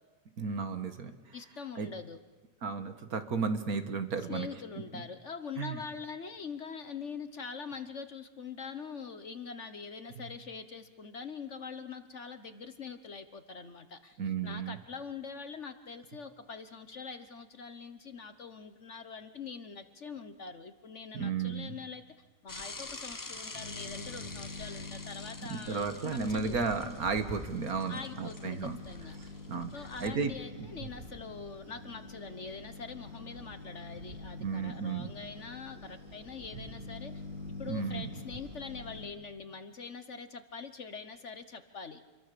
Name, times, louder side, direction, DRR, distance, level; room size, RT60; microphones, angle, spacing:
voice 1, 0.4-1.2 1.8-1.9 2.6-4.5 4.9-5.0 5.6-5.8 10.2-10.3 14.2-14.8 21.1-21.8 25.5-28.8 29.5-29.7 30.0-30.3 34.4-35.1 36.5-36.7 37.7-38.1, right 5 dB, 60° right, 9 dB, 1.8 m, -33 dB
voice 2, 1.3-2.2 4.2-22.0 22.4-26.6 27.9-29.4 29.7-37.1 37.6-42.0, left 5 dB, 45° left, 10 dB, 1.3 m, -44 dB
Bicycle / Mechanisms, 22.5-30.1, left 3 dB, 30° left, 0.3 m, -47 dB
sound 1, 23.5-39.0, left 2 dB, 90° right, 6.7 m, -46 dB
28.0 x 22.5 x 6.8 m, 1.3 s
omnidirectional pair, 1.8 m